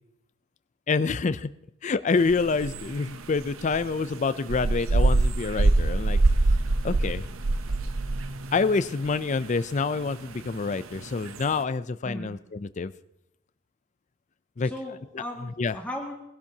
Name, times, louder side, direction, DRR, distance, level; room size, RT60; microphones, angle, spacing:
voice 1, 0.9-1.5 1.8-6.2 6.8-7.2 8.5-12.9 14.6-14.7 15.1-15.8, left 4 dB, 35° left, 13 dB, 0.4 m, -27 dB
sound 1, 2.2-11.6, right 2 dB, 75° right, 0.7 m, -25 dB
voice 2, 14.6-16.1, left 1 dB, 5° left, -2 dB, 2.0 m, -36 dB
20.5 x 12.0 x 2.8 m, 0.87 s
head